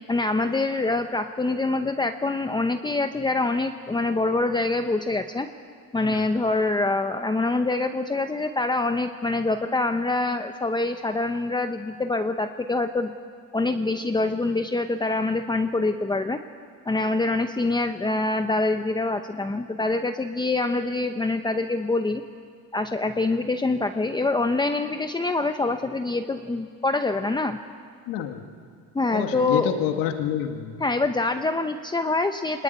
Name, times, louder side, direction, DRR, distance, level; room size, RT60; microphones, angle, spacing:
voice 1, 0.1-5.5 5.9-13.1 13.5-16.4 16.9-22.2 22.7-27.6 28.9-29.7 30.8-32.6, left 2 dB, 15° left, 7 dB, 0.9 m, -25 dB
voice 2, 28.1-28.4 29.1-30.8, left 10 dB, 85° left, 5 dB, 1.9 m, -28 dB
23.0 x 20.0 x 9.5 m, 2.1 s
cardioid pair, 110°, 32 cm